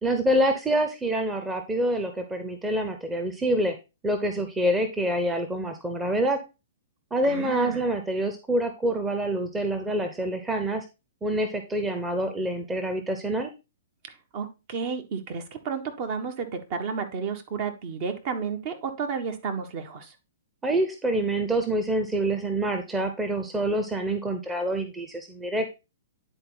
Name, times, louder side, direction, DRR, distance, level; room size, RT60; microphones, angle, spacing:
voice 1, 0.0-3.7 4.0-6.4 7.1-10.8 11.2-13.5 20.6-25.7, right 1 dB, 10° right, 6 dB, 1.0 m, -26 dB
voice 2, 7.2-7.8 14.3-20.1, right 5 dB, 45° right, 6 dB, 1.4 m, -32 dB
9.9 x 4.2 x 3.9 m, 0.27 s
figure-of-eight pair, 115°, 0 cm